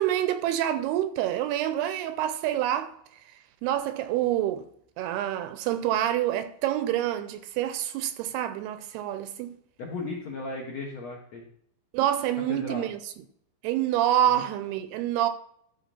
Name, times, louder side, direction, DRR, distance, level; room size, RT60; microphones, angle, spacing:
voice 1, 0.0-3.0 3.6-4.7 5.0-9.6 11.9-13.0 13.6-15.3, right 12 dB, 85° right, 2.5 m, -27 dB
voice 2, 9.8-11.4 12.5-12.8 14.3-14.4, left 3 dB, 65° left, 1.7 m, -36 dB
12.5 x 5.8 x 4.3 m
omnidirectional pair, 4.8 m